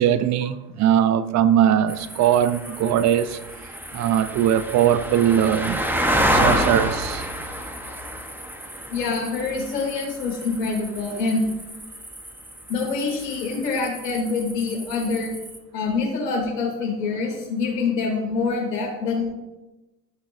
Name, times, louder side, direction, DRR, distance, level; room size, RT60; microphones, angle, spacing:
voice 1, 0.0-3.4 3.9-5.8 6.3-7.3, right 10 dB, 35° right, 0.6 m, -20 dB
sound 1, 1.9-15.6, equal, 5° right, 1.0 m, -29 dB
voice 2, 8.9-11.5 12.7-15.3 15.7-19.3, left 4 dB, 80° left, 3.0 m, -25 dB
15.0 x 6.2 x 2.6 m
hypercardioid pair, 75°, 48 cm